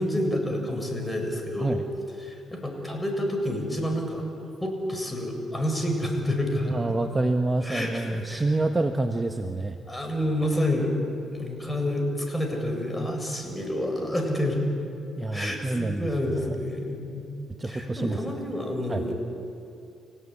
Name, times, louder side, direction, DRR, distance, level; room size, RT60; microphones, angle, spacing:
voice 1, 0.0-1.8 2.2-4.2 4.6-6.8 7.6-8.4 9.9-11.0 11.3-14.6 15.3-17.2 17.6-19.1, left 1 dB, 15° left, 3 dB, 7.5 m, -29 dB
voice 2, 6.7-9.8 15.2-16.6 17.6-18.2 18.9-19.0, right 2 dB, 25° right, 5 dB, 1.4 m, -27 dB
30.0 x 17.5 x 9.9 m, 2.6 s
supercardioid pair, 65°, 0 cm